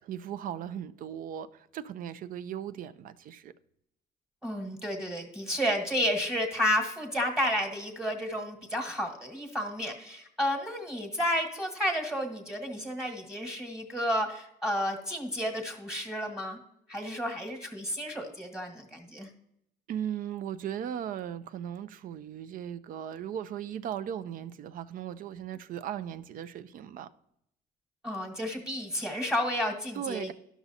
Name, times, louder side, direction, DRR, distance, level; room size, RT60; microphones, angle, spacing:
voice 1, 0.0-3.5 19.9-27.1 30.0-30.3, right 9 dB, 55° right, 0.4 m, -37 dB
voice 2, 4.4-16.6 16.9-19.3 28.0-30.3, equal, 5° right, 1.3 m, -31 dB
12.0 x 6.0 x 2.7 m
cardioid pair, 110°, 17 cm